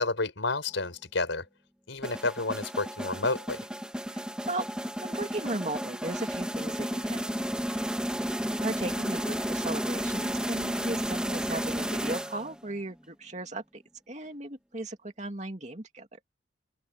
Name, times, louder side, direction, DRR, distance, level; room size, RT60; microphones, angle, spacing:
voice 1, 0.0-1.5 1.9-3.7, left 3 dB, 90° left, 5.4 m, -30 dB
sound 1, 2.0-12.7, equal, 5° right, 2.2 m, -32 dB
voice 2, 4.1-4.7 5.0-7.9 8.6-16.2, right 2 dB, 40° right, 2.5 m, -37 dB
open air
head